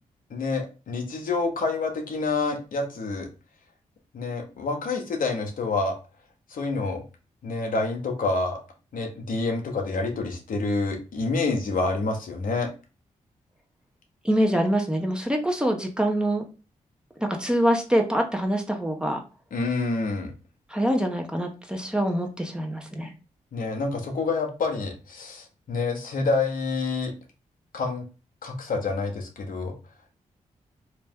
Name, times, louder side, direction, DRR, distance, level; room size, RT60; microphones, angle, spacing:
voice 1, 0.3-3.3 4.1-6.0 6.5-7.0 7.4-8.6 8.9-12.7 19.5-20.3 23.5-27.1 27.7-28.0 28.4-29.7, left 3 dB, 70° left, 2 dB, 0.9 m, -27 dB
voice 2, 14.2-16.4 17.2-19.2 20.7-23.1, equal, 5° right, 3 dB, 0.9 m, -25 dB
3.2 x 2.9 x 3.6 m, 0.33 s
supercardioid pair, 45°, 15 cm